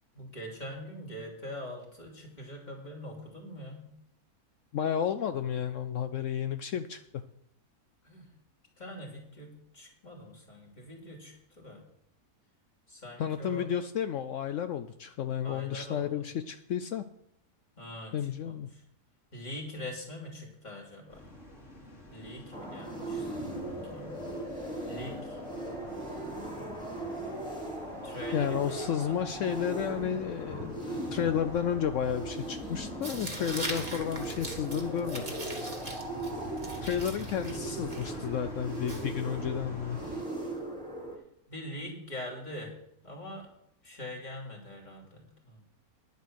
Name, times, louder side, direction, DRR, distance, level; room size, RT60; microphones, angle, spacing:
voice 1, 0.1-3.9 8.0-8.2 8.8-11.8 12.9-13.7 15.4-16.2 17.8-18.1 18.4-18.8 19.3-21.3 22.1-24.2 24.9-25.4 28.0-28.6 29.0-29.5 41.5-42.7 43.0-43.5 43.8-45.6, left 1 dB, 30° left, -1 dB, 3.0 m, -43 dB
voice 2, 4.7-7.0 13.2-17.0 18.1-18.7 28.3-35.3 36.8-40.0, left 9 dB, 65° left, 10 dB, 0.8 m, -32 dB
sound 1, 21.1-40.2, left 1 dB, 50° left, 3.1 m, -48 dB
sound 2, 22.5-41.2, right 1 dB, 5° left, 2.4 m, -38 dB
Tearing, 33.0-39.6, right 2 dB, 25° right, 1.8 m, -42 dB
10.5 x 8.2 x 6.4 m, 0.74 s
omnidirectional pair, 1.6 m